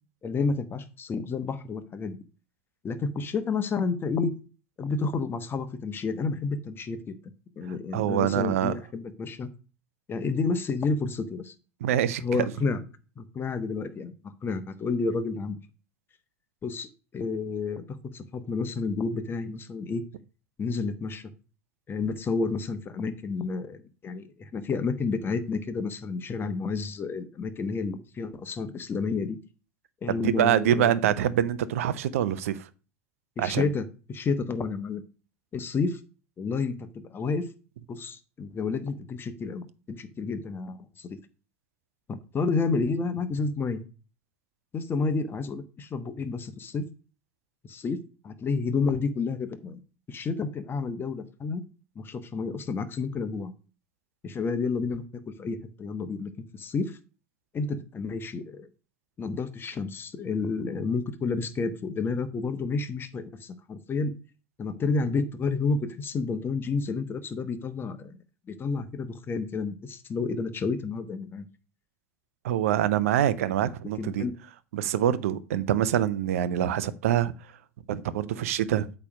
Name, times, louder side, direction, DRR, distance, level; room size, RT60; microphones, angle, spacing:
voice 1, 0.2-2.2 2.8-4.3 4.8-7.1 7.6-9.5 10.1-11.5 12.2-12.8 13.2-14.1 14.4-15.6 16.6-17.8 18.1-20.0 20.6-21.3 21.9-29.4 30.0-31.0 33.4-35.0 35.5-36.0 36.4-37.5 37.9-41.2 42.1-43.8 44.7-46.8 47.6-49.8 50.1-51.6 51.9-53.5 54.2-57.0 57.5-58.7 59.2-64.1 64.6-68.2 68.5-71.5 74.0-74.4, left 4 dB, 30° left, 1.1 m, -30 dB
voice 2, 7.9-8.8 11.8-12.2 30.1-32.7 33.4-33.7 72.4-74.2 74.7-77.3 77.9-78.9, right 10 dB, 70° right, 0.7 m, -25 dB
8.4 x 3.3 x 6.1 m
hypercardioid pair, 80°, 8 cm